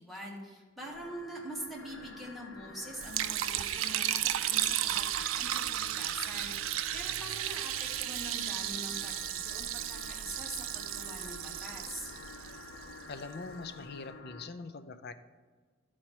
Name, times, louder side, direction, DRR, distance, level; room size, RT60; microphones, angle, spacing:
voice 1, 0.0-12.1, equal, ahead, -2 dB, 1.4 m, -44 dB
sound 1, 0.8-14.5, left 3 dB, 85° left, 1.3 m, -49 dB
Liquid, 3.0-13.2, right 12 dB, 80° right, 0.4 m, -34 dB
voice 2, 13.1-15.1, left 4 dB, 55° left, 10 dB, 0.5 m, -43 dB
11.5 x 4.4 x 4.5 m, 1.5 s
head